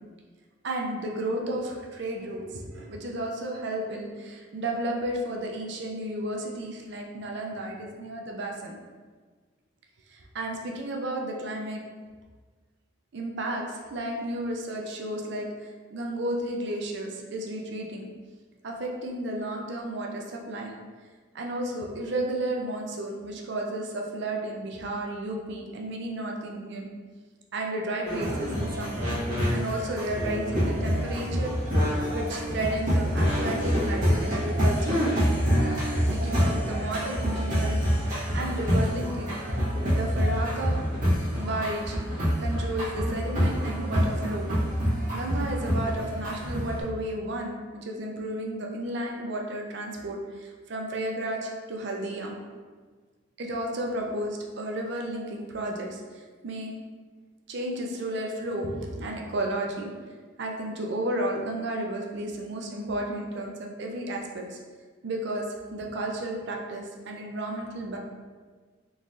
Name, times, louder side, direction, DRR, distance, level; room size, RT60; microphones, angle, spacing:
voice 1, 0.6-8.8 10.1-11.8 13.1-15.5 15.9-18.1 18.6-20.7 21.3-26.9 27.5-29.1 29.5-31.5 31.9-35.0 36.1-39.4 39.9-40.9 41.4-42.0 42.4-44.5 45.1-52.3 53.4-56.7 57.5-59.9 60.4-64.6 65.0-68.0, right 1 dB, 60° right, 1 dB, 0.5 m, -33 dB
sound 1, 28.0-46.8, equal, 40° right, 1.2 m, -26 dB
3.8 x 3.0 x 2.6 m, 1.5 s
head